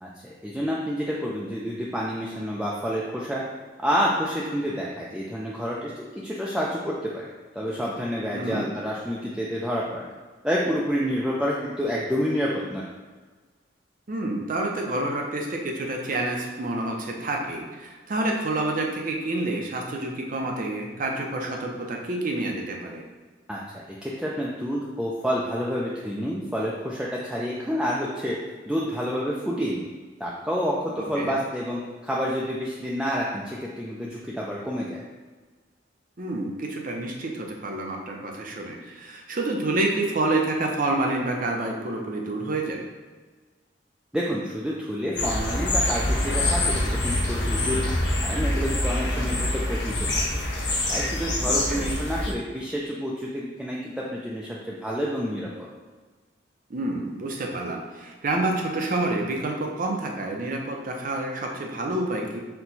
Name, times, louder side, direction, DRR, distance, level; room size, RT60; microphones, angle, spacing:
voice 1, 0.0-3.4 3.8-7.3 7.6-10.1 10.4-12.8 23.5-28.4 28.7-29.8 30.2-35.0 44.1-47.9 48.2-50.2 50.9-55.7, equal, 5° right, -5 dB, 0.4 m, -29 dB
voice 2, 8.3-8.6 14.1-23.0 31.2-31.3 36.2-42.9 51.4-51.9 56.7-62.4, right 2 dB, 45° right, 1 dB, 0.6 m, -28 dB
sound 1, 45.2-52.3, left 1 dB, 70° left, 0.7 m, -25 dB
4.4 x 2.2 x 4.0 m, 1.4 s
head